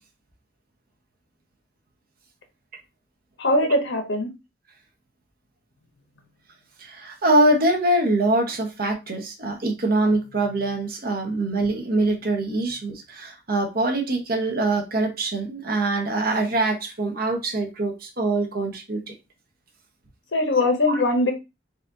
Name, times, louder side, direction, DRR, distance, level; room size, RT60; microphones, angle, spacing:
voice 1, 3.4-4.3 20.3-21.3, left 2 dB, 75° left, 1.2 m, -21 dB
voice 2, 6.8-19.1 20.6-21.0, right 2 dB, 50° right, 1.1 m, -24 dB
4.1 x 2.6 x 3.9 m
head